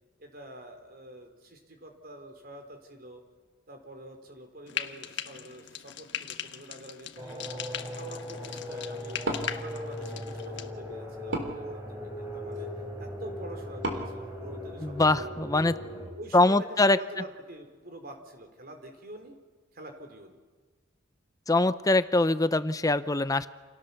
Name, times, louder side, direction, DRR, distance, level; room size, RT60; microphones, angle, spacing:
voice 1, 0.2-3.2 3.7-9.2 9.5-12.7 13.0-15.2 16.2-19.4 19.7-20.4, right 1 dB, 50° right, 5 dB, 4.0 m, -46 dB
Frying (food), 4.7-10.7, left 9 dB, 60° left, 1.4 m, -39 dB
sound 1, 7.2-16.1, left 1 dB, 15° right, 6.0 m, -38 dB
Wood, 9.2-15.2, right 1 dB, 70° right, 3.7 m, -39 dB
voice 2, 14.8-15.7 16.3-17.0 21.5-23.5, left 2 dB, 20° left, 13 dB, 0.7 m, -23 dB
29.0 x 28.0 x 7.1 m, 1.4 s
head